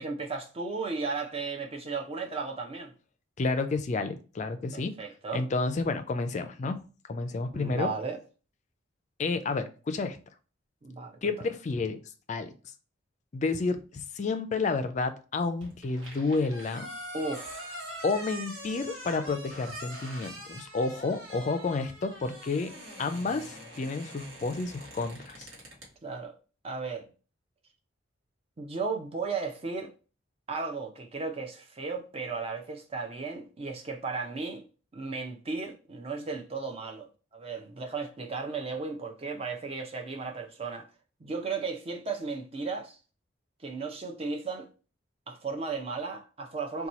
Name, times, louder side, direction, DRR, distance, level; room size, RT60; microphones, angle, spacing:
voice 1, 0.0-2.9 4.7-5.5 7.5-8.2 10.8-11.3 17.1-17.9 26.0-26.3 26.6-27.1 28.6-29.9 30.5-34.6 34.9-40.9 41.2-43.0 43.6-44.7 45.3-46.9, right 4 dB, 30° right, 0.5 m, -35 dB
voice 2, 3.4-4.9 5.3-6.8 7.1-7.9 9.2-10.2 11.2-12.0 12.3-12.5 13.3-16.9 18.0-22.7 23.0-25.5, left 3 dB, 35° left, 0.3 m, -30 dB
sound 1, 15.6-25.9, equal, 70° right, 1.1 m, -44 dB
2.9 x 2.2 x 4.0 m
head